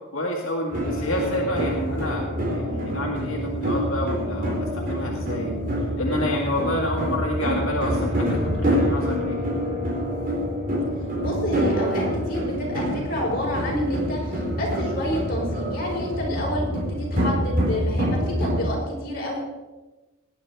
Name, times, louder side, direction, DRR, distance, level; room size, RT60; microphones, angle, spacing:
voice 1, 0.1-5.5 6.0-9.4, left 1 dB, 85° left, -1 dB, 1.9 m, -28 dB
sound 1, 0.7-18.7, equal, 40° right, 4.1 m, -26 dB
voice 2, 11.2-19.4, left 1 dB, 45° left, -3 dB, 5.1 m, -29 dB
18.0 x 9.6 x 4.6 m, 1.1 s
head